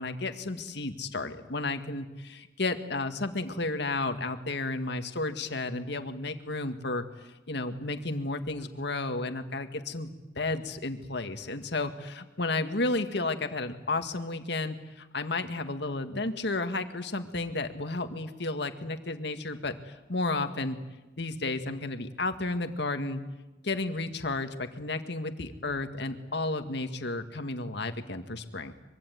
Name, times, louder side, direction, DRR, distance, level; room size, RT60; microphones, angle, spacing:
voice 1, 0.0-10.1 10.4-20.8 21.2-23.2 23.6-28.7, left 2 dB, 65° left, 7 dB, 2.0 m, -32 dB
24.5 x 24.0 x 9.4 m, 1.1 s
head